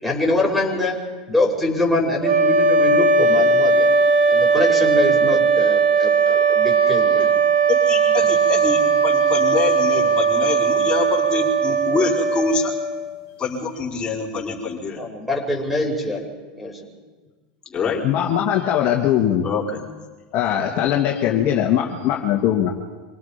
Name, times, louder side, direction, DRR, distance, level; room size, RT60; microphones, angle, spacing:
voice 1, 0.0-1.0 1.3-3.9 4.2-7.3 8.2-8.3 15.0-16.2 16.5-16.8, left 2 dB, ahead, 1 dB, 5.5 m, -24 dB
sound 1, 2.2-13.1, right 4 dB, 50° right, 3.3 m, -18 dB
voice 2, 7.7-12.7 13.4-15.1 17.7-18.1 19.4-19.8, left 4 dB, 20° left, -4 dB, 5.2 m, -25 dB
voice 3, 18.0-19.5 20.3-22.7, left 10 dB, 50° left, 0 dB, 2.4 m, -20 dB
26.5 x 18.5 x 5.3 m, 1.4 s
supercardioid pair, 120°, 5 cm